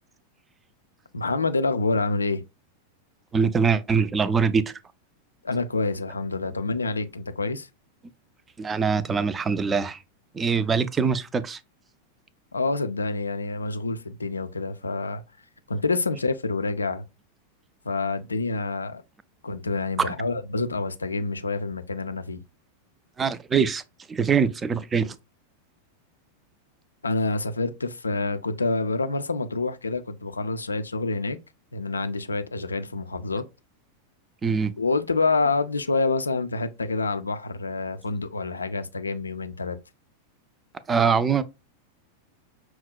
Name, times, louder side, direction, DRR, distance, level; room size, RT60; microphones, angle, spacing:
voice 1, 1.1-2.4 5.4-7.7 12.5-15.2 15.7-17.0 17.9-19.0 19.4-22.4 27.0-31.4 31.7-33.4 34.8-39.8, left 3 dB, 75° left, 0.3 m, -27 dB
voice 2, 3.3-4.6 8.6-10.0 10.3-11.6 20.1-20.2 23.2-23.8 24.1-25.2 34.4-34.7 40.9-41.4, right 6 dB, 20° right, 0.3 m, -23 dB
5.6 x 2.1 x 2.3 m
figure-of-eight pair, 90°, 0 cm